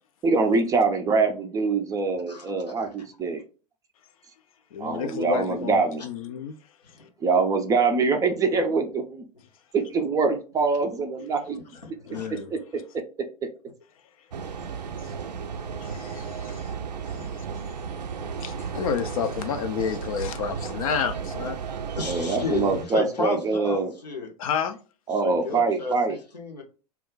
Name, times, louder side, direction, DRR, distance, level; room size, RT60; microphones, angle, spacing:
voice 1, 0.2-3.4 4.8-6.0 7.2-9.2 9.7-11.6 12.5-12.8 22.0-23.9 25.1-26.2, right 4 dB, 15° right, 0.3 m, -24 dB
voice 2, 4.7-6.6 12.1-12.5 15.8-16.7 17.2-17.3 18.4-21.6 24.4-24.8, left 7 dB, 60° left, 0.4 m, -30 dB
sound 1, 14.3-22.8, right 6 dB, 85° right, 0.4 m, -34 dB
voice 3, 22.0-24.3 25.2-26.6, left 3 dB, 85° left, 0.7 m, -32 dB
2.3 x 2.1 x 3.8 m
figure-of-eight pair, 95°, 21 cm